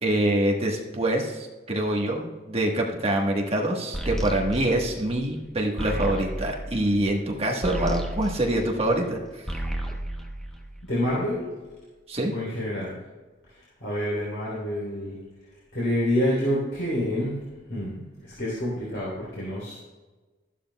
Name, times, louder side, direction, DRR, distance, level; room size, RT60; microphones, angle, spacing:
voice 1, 0.0-9.4 12.1-12.3, right 1 dB, 30° right, 1 dB, 1.3 m, -25 dB
sound 1, 3.9-9.1 9.4-11.1, right 1 dB, 5° left, 0.9 m, -33 dB
voice 2, 10.9-11.5 12.3-13.0 13.8-15.2 15.7-17.4 17.7-19.7, left 1 dB, 80° left, -7 dB, 3.7 m, -27 dB
13.5 x 11.5 x 2.3 m, 1.2 s
head